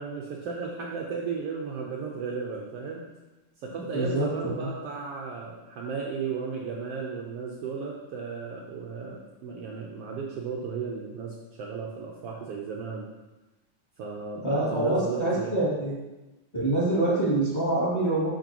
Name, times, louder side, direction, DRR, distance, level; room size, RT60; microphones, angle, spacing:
voice 1, 0.0-3.0 3.6-13.1 14.0-15.5, right 5 dB, 85° right, -2 dB, 1.3 m, -35 dB
voice 2, 3.9-4.7 14.4-16.0 16.5-18.3, right 2 dB, 10° left, -7 dB, 1.8 m, -25 dB
7.8 x 6.9 x 3.0 m, 1.1 s
omnidirectional pair, 3.6 m